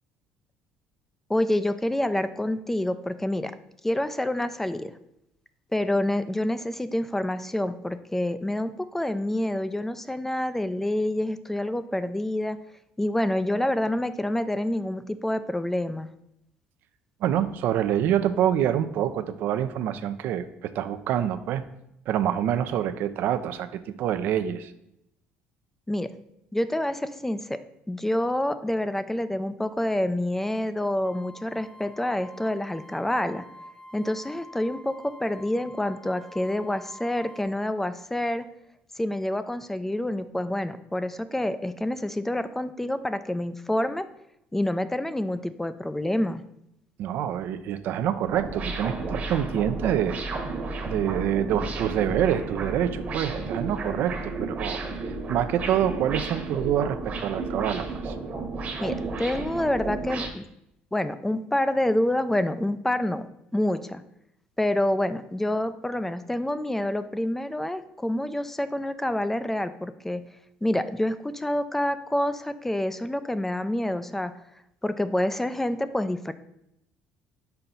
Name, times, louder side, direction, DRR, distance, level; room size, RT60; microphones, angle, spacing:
voice 1, 1.3-3.5 3.8-4.9 5.7-12.6 13.0-16.1 25.9-26.1 26.5-27.6 27.9-33.4 33.9-38.5 39.0-44.1 44.5-46.4 58.8-60.5 60.9-63.2 63.5-64.0 64.6-70.2 70.6-74.3 74.8-76.3, left 1 dB, 10° left, 12 dB, 0.3 m, -27 dB
voice 2, 17.2-21.6 22.1-24.7 47.0-50.2 50.8-58.1, right 10 dB, 65° right, 11 dB, 0.4 m, -26 dB
sound 1, 31.0-37.4, left 1 dB, 25° left, 0.8 m, -47 dB
sound 2, 48.2-60.3, right 3 dB, 45° right, 1.2 m, -33 dB
5.7 x 4.5 x 3.9 m, 0.80 s
supercardioid pair, 90°, 4 cm